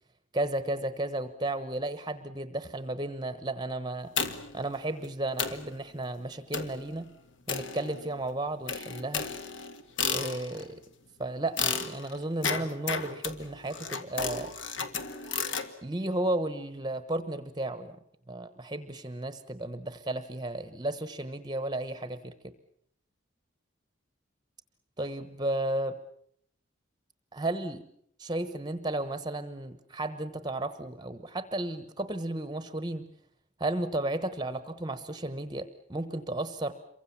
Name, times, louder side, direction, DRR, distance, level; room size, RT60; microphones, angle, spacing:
voice 1, 0.3-4.1 4.5-7.1 7.5-9.3 10.1-10.8 11.2-14.5 15.8-18.0 18.3-22.5 25.0-26.0 27.3-27.8 28.2-33.1 33.6-36.7, right 1 dB, 20° right, 11 dB, 1.0 m, -33 dB
sound 1, 4.2-4.6 5.0-5.1 5.4-5.7 6.5-6.8 7.5-8.2 8.7-10.7 11.6-15.7, left 5 dB, 60° left, 1.9 m, -33 dB
28.0 x 24.0 x 7.2 m, 0.68 s
head